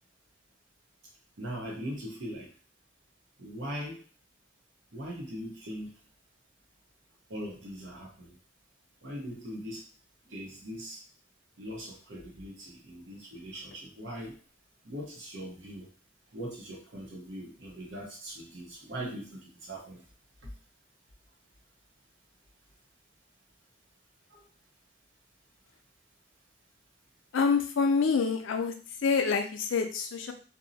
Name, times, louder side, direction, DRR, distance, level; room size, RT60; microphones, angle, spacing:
voice 1, 1.4-2.5 3.4-4.0 4.9-5.9 7.3-8.4 9.0-9.8 10.3-11.0 11.6-14.4 14.8-15.9 16.3-20.0 20.4-20.5 24.3-24.5, equal, 75° right, -2 dB, 0.9 m, -40 dB
voice 2, 27.3-28.7 29.0-30.3, left 5 dB, 90° left, 6 dB, 0.4 m, -26 dB
2.7 x 2.0 x 2.7 m, 0.38 s
head